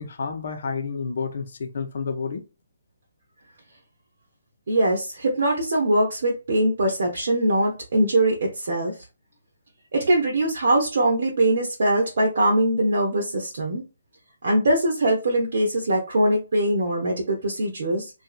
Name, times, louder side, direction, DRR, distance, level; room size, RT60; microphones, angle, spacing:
voice 1, 0.0-2.4, left 5 dB, 60° left, 0.6 m, -30 dB
voice 2, 4.7-9.0 9.9-13.8 14.4-18.1, right 1 dB, 60° right, 0.8 m, -22 dB
2.7 x 2.5 x 2.4 m
figure-of-eight pair, 140°, 0 cm